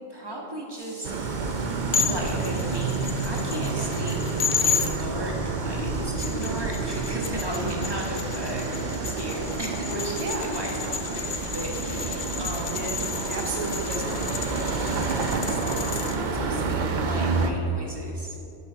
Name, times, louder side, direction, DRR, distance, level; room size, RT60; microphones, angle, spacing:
voice 1, 0.1-1.1 2.1-4.2 4.6-5.3 5.6-8.7 9.0-13.3 14.7-18.4, right 1 dB, 20° right, -2 dB, 1.2 m, -36 dB
sound 1, 0.7-15.5, equal, ahead, 1.2 m, -47 dB
sound 2, 1.0-17.5, right 4 dB, 50° right, 0.6 m, -29 dB
sound 3, 1.9-4.9 6.0-16.2, left 6 dB, 60° left, 0.3 m, -32 dB
voice 2, 7.3-7.7 10.2-10.5 12.7-14.8, right 3 dB, 35° right, 1 dB, 1.0 m, -35 dB
11.0 x 4.1 x 6.1 m, 2.7 s
omnidirectional pair, 1.3 m